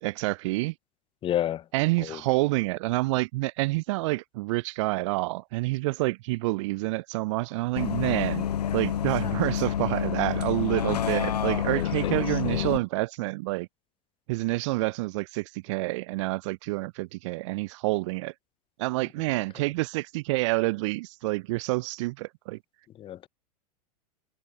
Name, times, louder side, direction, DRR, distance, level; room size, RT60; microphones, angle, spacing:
voice 1, 0.0-0.7 1.7-8.5 8.7-13.7 14.3-18.3 18.8-22.6, right 22 dB, 50° right, 0.5 m, -28 dB
voice 2, 1.2-1.6 2.0-2.2 11.6-12.8 23.0-23.3, left 11 dB, 25° left, 0.8 m, -32 dB
Bus, 7.8-12.8, left 9 dB, 75° left, 0.6 m, -28 dB
figure-of-eight pair, 95°, 20 cm